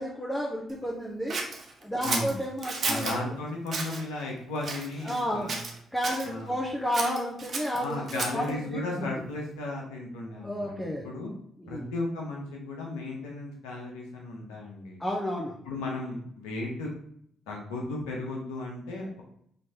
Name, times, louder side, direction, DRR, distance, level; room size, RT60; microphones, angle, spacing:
voice 1, 0.0-1.4 1.8-3.2 5.0-5.5 5.9-9.2 10.4-11.1 11.6-11.9 15.0-15.6, equal, 10° left, -4 dB, 1.1 m, -32 dB
Scissors, 1.3-3.2 3.7-4.0 4.6-5.2 5.5-6.3 6.9-8.5, right 3 dB, 50° right, 1.0 m, -33 dB
voice 2, 2.0-2.4 2.8-5.7 6.2-6.6 7.8-11.3 11.7-15.0 15.6-16.9 17.5-19.2, left 2 dB, 90° left, -1 dB, 0.9 m, -35 dB
5.4 x 3.1 x 2.8 m, 0.68 s
supercardioid pair, 55°, 0 cm